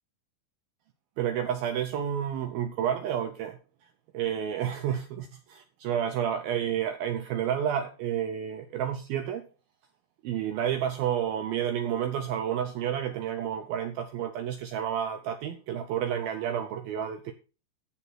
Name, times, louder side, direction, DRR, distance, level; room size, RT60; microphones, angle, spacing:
voice 1, 1.2-3.6 4.1-9.4 10.2-17.3, right 9 dB, 75° right, 2.3 m, -30 dB
13.0 x 7.4 x 4.6 m
omnidirectional pair, 5.1 m